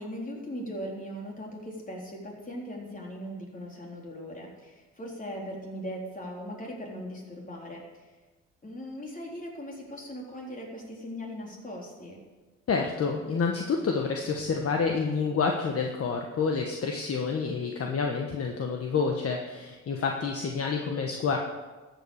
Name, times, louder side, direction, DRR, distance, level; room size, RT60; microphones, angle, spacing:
voice 1, 0.0-7.8 8.6-12.2, equal, 25° left, -1 dB, 3.8 m, -39 dB
voice 2, 12.7-21.4, left 5 dB, 50° left, 2 dB, 1.4 m, -28 dB
13.5 x 8.3 x 6.6 m, 1.2 s
cardioid pair, 90°, 30 cm